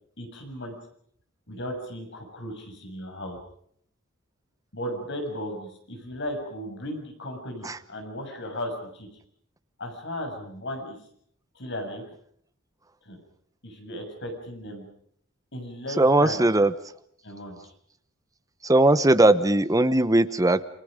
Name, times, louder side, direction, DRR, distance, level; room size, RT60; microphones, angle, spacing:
voice 1, 0.2-0.7 1.5-3.4 4.7-9.1 9.8-11.0 11.5-12.0 13.0-13.2 13.6-14.8 15.5-16.4 17.2-17.7, equal, 60° left, 3 dB, 7.0 m, -35 dB
voice 2, 16.0-16.7 18.6-20.6, right 2 dB, 15° right, 12 dB, 1.0 m, -19 dB
28.5 x 25.5 x 5.2 m, 0.65 s
head